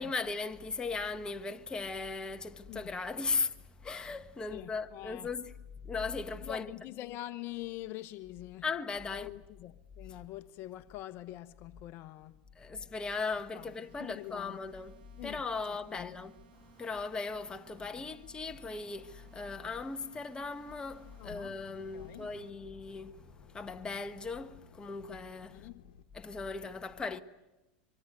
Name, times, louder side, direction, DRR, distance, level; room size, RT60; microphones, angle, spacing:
voice 1, 0.0-5.5 5.8-6.7 8.6-9.3 12.6-25.7 26.1-27.2, left 4 dB, 15° left, 1.2 m, -38 dB
voice 2, 4.5-5.3 6.4-8.6 9.1-12.4 13.5-13.7 14.0-14.6 15.2-16.1 18.0-18.2 21.2-21.5 21.9-22.3 25.5-25.8, left 15 dB, 50° left, 1.0 m, -45 dB
sound 1, 13.5-22.5, right 8 dB, 85° right, 2.1 m, -61 dB
sound 2, 20.5-26.0, left 9 dB, 75° left, 1.3 m, -57 dB
25.0 x 23.5 x 9.5 m
supercardioid pair, 115°, 5 cm